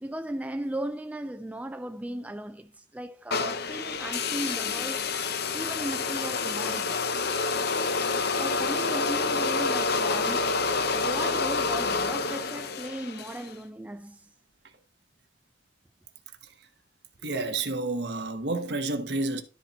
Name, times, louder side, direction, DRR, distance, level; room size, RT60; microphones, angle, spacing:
voice 1, 0.0-5.0 5.5-7.1 8.3-10.5 10.9-14.3, right 1 dB, 10° right, 0.3 m, -36 dB
sound 1, 3.3-13.5, left 4 dB, 55° left, 0.7 m, -28 dB
voice 2, 17.2-19.4, right 2 dB, 60° right, 1.2 m, -30 dB
12.5 x 4.3 x 4.1 m
head